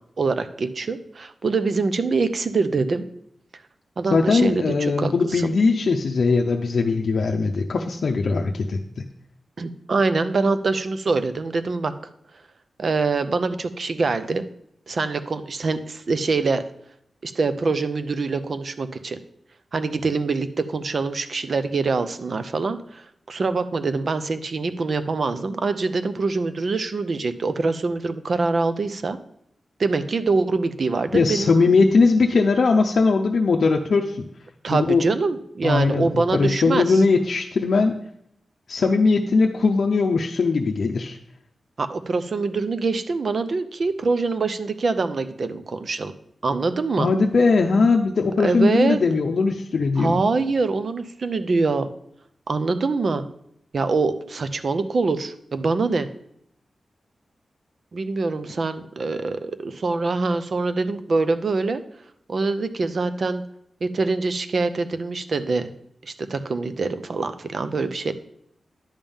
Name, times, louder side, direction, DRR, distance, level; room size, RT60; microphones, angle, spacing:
voice 1, 0.2-3.1 4.0-5.5 9.6-11.9 12.8-14.5 14.9-16.7 17.2-19.2 19.7-29.2 29.8-31.5 34.6-37.0 41.8-46.1 46.4-47.1 48.4-49.0 50.0-51.9 52.5-53.2 53.7-56.1 57.9-61.8 62.3-63.4 63.8-65.7 66.0-68.1, right 3 dB, 50° right, 11 dB, 0.6 m, -24 dB
voice 2, 4.1-9.0 31.1-34.3 34.7-35.0 35.6-38.0 38.7-41.2 47.0-50.2, left 4 dB, 65° left, 2 dB, 0.6 m, -20 dB
10.5 x 3.6 x 7.0 m, 0.72 s
wide cardioid pair, 150°, 0 cm